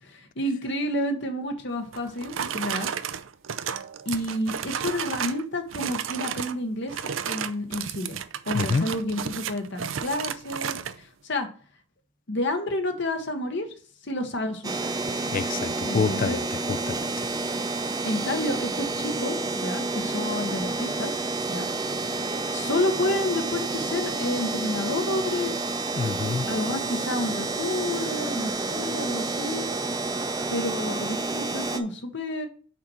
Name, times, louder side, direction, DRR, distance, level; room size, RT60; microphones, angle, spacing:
voice 1, 0.0-2.9 4.0-7.0 7.2-8.2 8.5-11.5 12.3-13.7 14.0-14.8 15.8-16.4 18.0-21.1 21.5-21.7 22.5-25.7 26.5-29.7 30.5-32.5, left 1 dB, 65° left, 1.2 m, -30 dB
sound 1, 1.9-5.4 5.7-6.6 6.9-11.0, right 8 dB, 90° right, 0.5 m, -32 dB
sound 2, 14.6-31.8, right 3 dB, 20° right, 0.6 m, -29 dB
voice 2, 15.3-16.4 16.7-17.0 26.0-26.6, left 5 dB, 45° left, 0.4 m, -27 dB
5.8 x 4.3 x 6.2 m
head